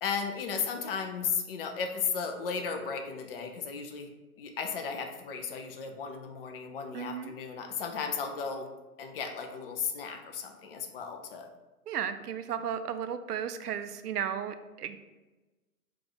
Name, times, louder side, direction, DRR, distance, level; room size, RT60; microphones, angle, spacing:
voice 1, 0.0-4.1 4.4-8.7 9.0-11.5, left 6 dB, 40° left, 5 dB, 0.5 m, -35 dB
voice 2, 6.9-7.3 11.9-15.1, right 8 dB, 90° right, 10 dB, 0.6 m, -34 dB
4.8 x 2.5 x 3.9 m, 1.1 s
hypercardioid pair, 140°, 45 cm